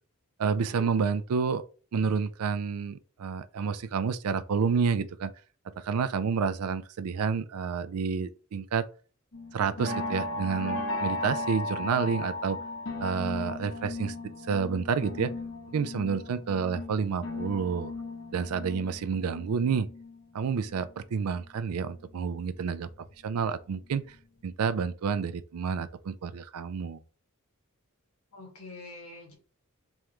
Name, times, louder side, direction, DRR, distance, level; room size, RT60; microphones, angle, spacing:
voice 1, 0.4-1.6 1.9-5.3 5.8-8.9 9.5-12.6 13.0-15.3 15.7-17.9 18.3-19.9 20.3-22.9 23.2-24.0 24.4-27.0, right 6 dB, 90° right, 0.4 m, -29 dB
sound 1, 9.3-21.5 21.8-23.4 23.8-24.2 24.5-24.6, left 2 dB, 60° left, 0.7 m, -37 dB
voice 2, 16.3-16.6 28.3-29.3, left 2 dB, 90° left, 1.8 m, -46 dB
3.6 x 3.0 x 3.2 m
head